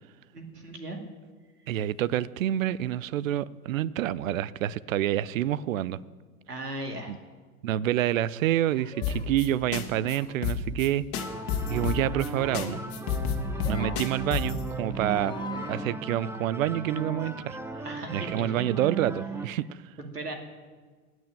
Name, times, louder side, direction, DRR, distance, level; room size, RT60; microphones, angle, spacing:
voice 1, 0.3-1.0 6.5-7.2 17.8-18.7 20.1-20.3, right 1 dB, 90° right, 4 dB, 2.3 m, -37 dB
voice 2, 1.7-6.0 7.1-7.2 7.6-11.0 11.7-12.8 13.7-15.4 15.7-17.6 18.1-19.7, right 12 dB, 60° right, 20 dB, 0.6 m, -28 dB
sound 1, 8.7-9.3 10.0-10.4 11.1-11.8 12.2-12.9 13.4-14.1 14.8-15.9, left 4 dB, 10° left, 1.1 m, -43 dB
sound 2, 9.0-9.5 9.7-9.8 10.1-10.2 10.4-10.9 11.1-12.3 12.5-12.7 12.9-14.6, left 8 dB, 40° left, 1.9 m, -29 dB
sound 3, 11.1-19.5, right 3 dB, 5° right, 0.7 m, -37 dB
18.0 x 6.3 x 8.8 m, 1.4 s
figure-of-eight pair, 100°, 46 cm